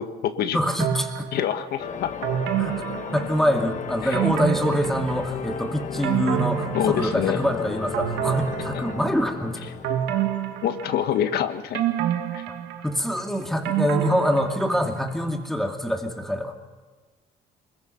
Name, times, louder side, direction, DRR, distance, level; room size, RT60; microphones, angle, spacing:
voice 1, 0.0-0.6 1.3-2.1 4.0-4.2 6.7-7.4 10.6-11.8 12.3-12.4, left 10 dB, 70° left, 9 dB, 1.5 m, -26 dB
voice 2, 0.5-1.3 2.6-2.8 3.1-9.6 12.8-16.6, equal, ahead, 3 dB, 2.4 m, -25 dB
sound 1, 0.8-1.6 2.2-3.7 4.1-5.5 5.8-7.5 7.9-9.3 9.8-11.3 11.7-15.0 15.3-15.4, right 11 dB, 85° right, 1.7 m, -28 dB
sound 2, 1.8-11.0, left 7 dB, 45° left, 1.4 m, -35 dB
24.0 x 21.5 x 5.8 m, 1.4 s
cardioid pair, 110°, 17 cm